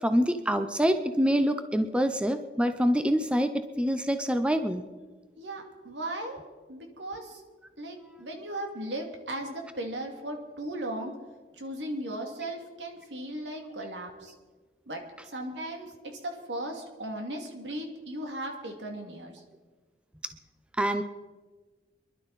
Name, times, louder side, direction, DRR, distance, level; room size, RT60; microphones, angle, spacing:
voice 1, 0.0-4.8 20.8-21.0, equal, 5° right, 8 dB, 0.6 m, -26 dB
voice 2, 5.4-6.4 6.7-7.4 7.8-11.1 11.6-14.3 14.9-19.4, right 1 dB, 90° right, 2 dB, 2.4 m, -37 dB
24.0 x 11.5 x 4.1 m, 1.3 s
head